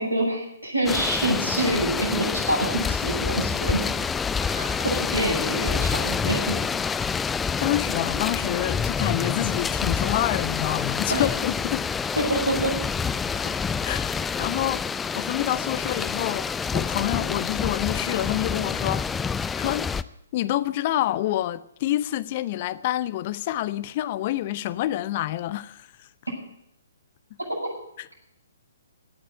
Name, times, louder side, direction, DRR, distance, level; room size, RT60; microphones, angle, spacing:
voice 1, 0.0-3.8 4.5-6.6 11.1-11.3 12.2-12.7, right 1 dB, 85° right, 7.6 m, -26 dB
sound 1, 0.9-20.0, left 6 dB, 10° left, 0.5 m, -27 dB
voice 2, 7.6-11.9 13.4-13.5 13.8-14.8 15.1-19.0 19.6-19.9 20.3-26.1 28.0-28.1, left 14 dB, 35° left, 0.7 m, -27 dB
17.0 x 7.7 x 9.1 m
figure-of-eight pair, 130°, 0 cm